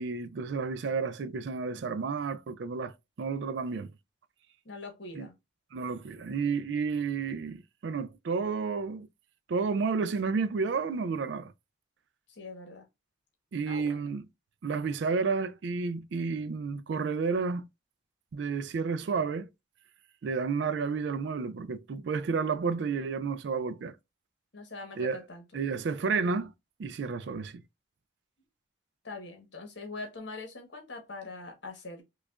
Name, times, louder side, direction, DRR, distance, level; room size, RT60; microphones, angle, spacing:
voice 1, 0.0-3.9 5.1-5.3 5.7-9.1 9.5-11.5 13.5-14.3 14.6-17.7 18.3-19.5 20.2-24.0 25.0-25.2 25.5-26.5 26.8-27.6, right 5 dB, 65° right, 0.3 m, -31 dB
voice 2, 4.6-5.3 12.3-12.9 13.7-14.0 24.5-25.6 29.0-32.0, left 3 dB, 70° left, 1.1 m, -43 dB
4.9 x 2.3 x 2.3 m
head